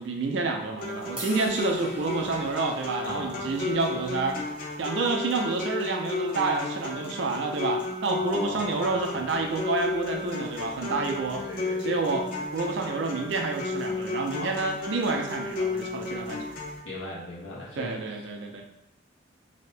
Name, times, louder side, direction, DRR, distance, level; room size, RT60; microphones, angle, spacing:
voice 1, 0.0-4.4 4.8-11.4 11.8-16.5 17.8-18.6, right 3 dB, 65° right, 3 dB, 0.5 m, -29 dB
sound 1, 0.8-16.8, left 3 dB, 45° left, 0.7 m, -33 dB
sound 2, 1.2-7.4, right 1 dB, 5° right, 0.4 m, -46 dB
voice 2, 3.0-3.6 8.2-9.4 10.8-12.0 14.3-14.6 16.8-18.0, left 2 dB, 85° left, -6 dB, 1.1 m, -38 dB
2.8 x 2.6 x 3.2 m, 0.82 s
head